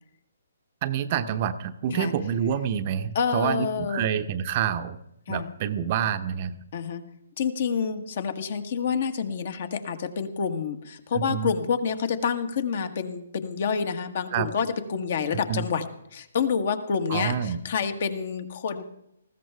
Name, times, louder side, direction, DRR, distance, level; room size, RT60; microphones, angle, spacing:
voice 1, 0.8-5.0 5.3-6.6 11.1-11.5 14.3-14.5 15.5-15.7 17.1-17.6, right 8 dB, 35° right, 10 dB, 0.9 m, -27 dB
voice 2, 3.1-4.1 5.3-5.5 6.7-7.0 7.4-15.8 16.1-18.8, left 6 dB, 50° left, 8 dB, 1.5 m, -28 dB
19.5 x 15.0 x 3.5 m, 0.80 s
figure-of-eight pair, 135°, 0 cm